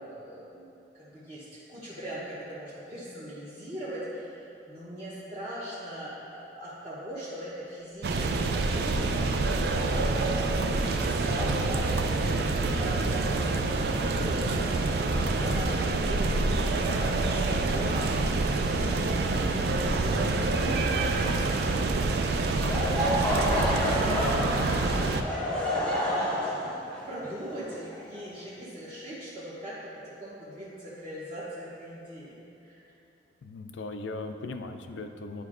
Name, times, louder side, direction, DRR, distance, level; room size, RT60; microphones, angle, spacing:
voice 1, 0.0-10.5 10.9-18.5 18.8-26.6 27.0-32.8, right 1 dB, 30° right, -10 dB, 0.8 m, -40 dB
sound 1, 8.0-25.2, right 3 dB, 55° right, 0.3 m, -27 dB
Laughter / Crowd, 22.5-28.5, equal, 5° left, 0.7 m, -29 dB
voice 2, 33.4-35.4, left 3 dB, 80° left, 7 dB, 0.4 m, -38 dB
10.0 x 4.4 x 2.5 m, 2.8 s
head